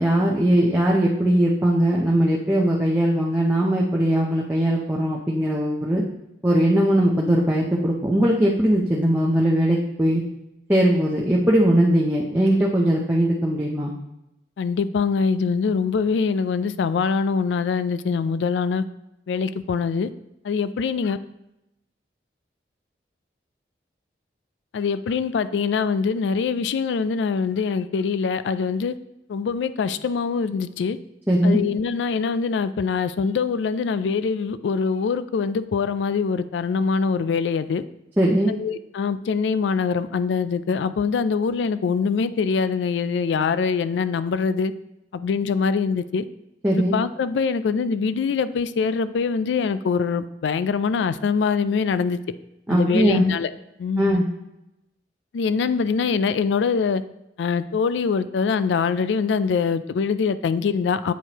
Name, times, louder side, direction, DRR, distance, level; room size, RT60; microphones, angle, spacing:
voice 1, 0.0-6.0 6.4-10.2 10.7-13.9 31.3-31.6 38.2-38.5 46.6-47.0 52.7-53.2 54.0-54.2, right 1 dB, 10° right, -4 dB, 0.6 m, -20 dB
voice 2, 14.6-18.8 19.3-20.1 20.4-21.2 24.7-28.9 29.3-31.0 31.4-37.8 38.5-44.7 45.1-46.2 46.7-52.2 52.7-53.5 53.8-54.2 55.3-57.0 57.4-61.1, left 5 dB, 90° left, 13 dB, 0.3 m, -23 dB
8.1 x 4.5 x 2.9 m, 0.87 s
head